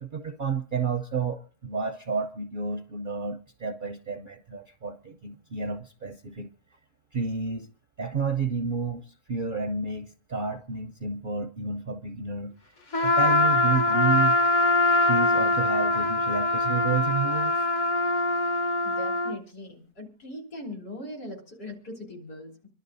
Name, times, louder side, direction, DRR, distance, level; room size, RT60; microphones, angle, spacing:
voice 1, 0.0-6.5 7.1-7.7 8.0-12.5 13.0-14.4 15.0-17.7, right 5 dB, 50° right, 5 dB, 0.6 m, -30 dB
Trumpet, 12.9-19.4, left 2 dB, 50° left, 1.3 m, -23 dB
voice 2, 18.8-22.7, left 1 dB, 70° left, 1 dB, 3.9 m, -40 dB
27.0 x 11.5 x 2.6 m, 0.38 s
omnidirectional pair, 1.7 m